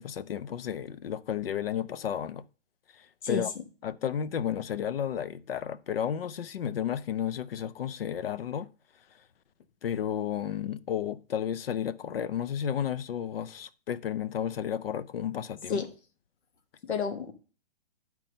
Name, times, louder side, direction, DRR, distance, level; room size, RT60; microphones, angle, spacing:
voice 1, 0.0-2.4 2.9-3.5 3.8-8.7 9.8-15.8, left 9 dB, 60° left, 0.6 m, -32 dB
voice 2, 16.8-17.3, left 6 dB, 85° left, 1.8 m, -30 dB
10.5 x 4.5 x 5.2 m
hypercardioid pair, 165°, 33 cm